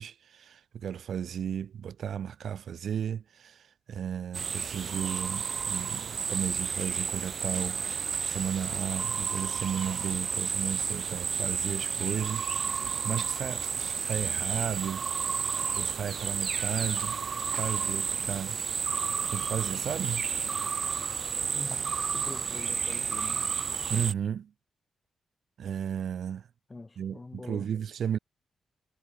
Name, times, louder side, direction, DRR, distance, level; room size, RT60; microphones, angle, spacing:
voice 1, 0.0-15.4 15.7-17.2 17.5-18.9 19.3-20.3 23.9-24.5 25.6-26.5 27.0-28.2, right 8 dB, 70° right, 0.9 m, -34 dB
sound 1, 4.3-24.1, right 6 dB, 50° right, 1.2 m, -31 dB
voice 2, 21.5-23.5 26.7-27.7, left 3 dB, 20° left, 6.9 m, -44 dB
cardioid pair, 115°, 0 cm